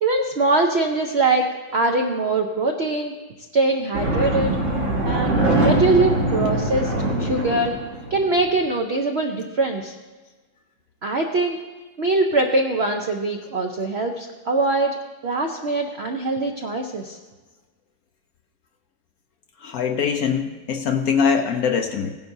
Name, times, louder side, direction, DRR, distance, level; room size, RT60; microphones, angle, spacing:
voice 1, 0.0-1.5 1.7-3.1 3.5-4.5 5.1-6.9 7.2-7.7 8.1-9.9 11.0-11.6 12.0-15.0 15.2-17.2, right 2 dB, 65° right, 3 dB, 0.6 m, -22 dB
sound 1, 3.9-8.4, right 1 dB, 40° right, 2.0 m, -22 dB
voice 2, 19.6-22.1, left 6 dB, 65° left, 4 dB, 0.9 m, -22 dB
17.0 x 10.5 x 2.7 m, 1.3 s
omnidirectional pair, 2.0 m